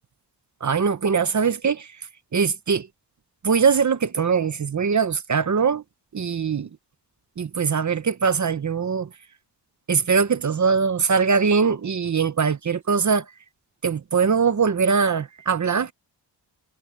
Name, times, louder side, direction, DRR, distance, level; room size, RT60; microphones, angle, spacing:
voice 1, 0.6-1.9 2.3-2.9 3.4-5.8 6.1-6.7 7.4-9.1 9.9-13.2 13.8-15.9, right 5 dB, 40° right, 0.9 m, -21 dB
wide cardioid pair, 140°, 43 cm